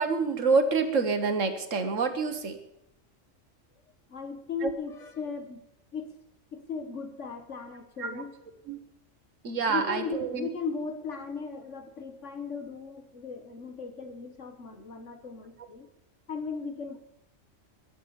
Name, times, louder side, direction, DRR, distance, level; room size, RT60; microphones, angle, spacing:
voice 1, 0.0-2.6 4.6-4.7 8.0-8.2 8.7-8.8 9.4-10.5, right 4 dB, 85° right, 8 dB, 1.8 m, -27 dB
voice 2, 4.1-5.7 5.9-6.1 6.5-8.3 9.7-15.9 16.3-17.0, left 4 dB, 70° left, 7 dB, 1.9 m, -37 dB
22.0 x 7.5 x 7.1 m, 0.83 s
omnidirectional pair, 1.3 m